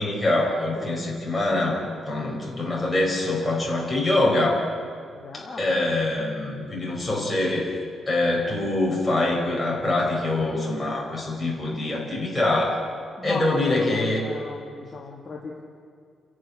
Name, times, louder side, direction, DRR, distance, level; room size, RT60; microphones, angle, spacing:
voice 1, 0.0-4.7 5.3-7.8 8.1-12.9 13.2-14.2, left 2 dB, 5° left, -4 dB, 5.1 m, -24 dB
voice 2, 5.1-5.9 13.2-15.6, left 3 dB, 25° left, -2 dB, 2.0 m, -37 dB
30.0 x 11.0 x 9.9 m, 2.2 s
cardioid pair, 180°, 0 cm